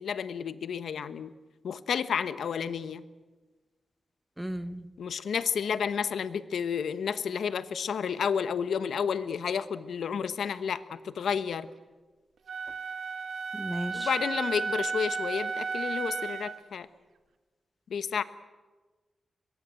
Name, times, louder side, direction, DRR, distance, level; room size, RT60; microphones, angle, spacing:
voice 1, 0.0-1.3 1.6-3.0 5.0-11.7 13.9-16.9 17.9-18.2, left 7 dB, 90° left, 13 dB, 1.1 m, -31 dB
voice 2, 4.4-4.9 13.6-14.1, equal, 10° right, 13 dB, 1.1 m, -34 dB
Wind instrument woodwind instrument, 12.5-16.6, right 5 dB, 80° right, 1.3 m, -33 dB
22.5 x 22.0 x 9.3 m, 1.3 s
wide cardioid pair, 115°, 0 cm